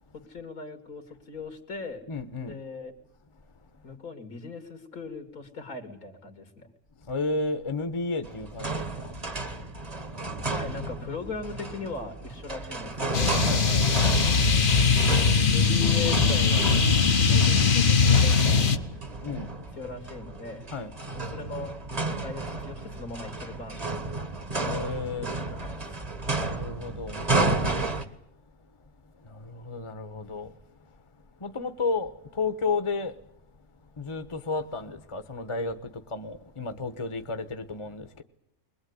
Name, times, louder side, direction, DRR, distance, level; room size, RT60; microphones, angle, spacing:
voice 1, 0.1-2.0 2.4-2.9 3.8-6.7 10.5-13.5 14.3-14.7 15.4-16.8 17.2-18.4 19.8-20.7 21.1-21.8 22.2-23.9 24.9-25.1 25.5-26.0, left 4 dB, 75° left, 3.0 m, -39 dB
voice 2, 2.1-2.6 7.0-9.4 9.9-10.0 13.4-14.1 19.2-19.5 20.7-20.9 24.6-25.3 26.4-28.1 29.2-30.6 30.8-31.0 31.4-33.2 34.0-38.2, left 3 dB, 20° left, 1.3 m, -33 dB
sound 1, 8.2-28.0, right 2 dB, 25° right, 1.6 m, -32 dB
sound 2, 13.1-18.8, left 5 dB, 40° left, 1.1 m, -21 dB
22.0 x 20.5 x 9.7 m
omnidirectional pair, 1.5 m